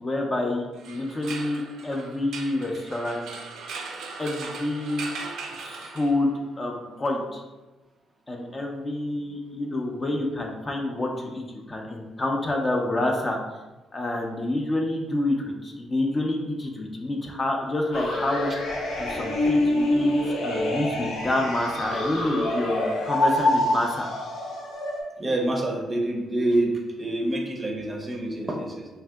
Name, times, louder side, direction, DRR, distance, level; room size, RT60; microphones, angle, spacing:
voice 1, 0.0-3.3 4.2-5.1 5.6-7.4 8.3-13.4 13.9-15.4 15.6-18.5 19.0-20.2 20.4-24.1, left 1 dB, 25° left, 1 dB, 0.5 m, -28 dB
sound 1, 0.7-6.4, right 4 dB, 80° right, 0.4 m, -39 dB
sound 2, 17.9-25.0, left 1 dB, 75° left, 0.7 m, -26 dB
voice 2, 25.2-28.9, right 1 dB, 25° right, 1 dB, 0.5 m, -27 dB
3.3 x 2.6 x 2.3 m, 1.1 s
cardioid pair, 90°, 0 cm